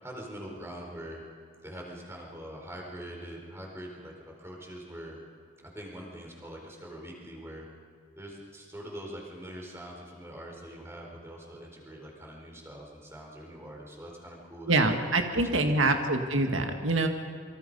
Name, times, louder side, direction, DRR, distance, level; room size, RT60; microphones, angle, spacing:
voice 1, 0.0-1.2 1.6-4.1 4.4-5.2 5.6-7.6 8.2-15.0 15.3-16.0, equal, 15° right, -1 dB, 4.4 m, -43 dB
voice 2, 14.7-17.1, right 2 dB, 90° right, 5 dB, 1.9 m, -25 dB
28.0 x 24.5 x 5.5 m, 2.2 s
head